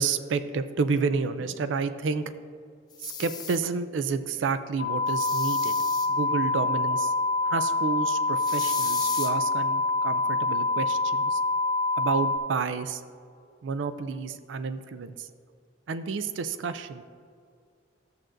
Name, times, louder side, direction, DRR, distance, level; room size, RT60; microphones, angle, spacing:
voice 1, 0.0-2.2 3.0-5.7 6.1-7.1 7.4-11.4 12.0-13.0 13.6-15.3 15.9-17.0, right 5 dB, 80° right, 11 dB, 0.4 m, -30 dB
sound 1, 2.9-3.6 5.1-6.1 8.4-9.3, left 7 dB, 20° left, 0.6 m, -36 dB
sound 2, 4.8-12.4, left 3 dB, 60° left, 0.8 m, -26 dB
13.0 x 7.5 x 2.6 m, 2.2 s
head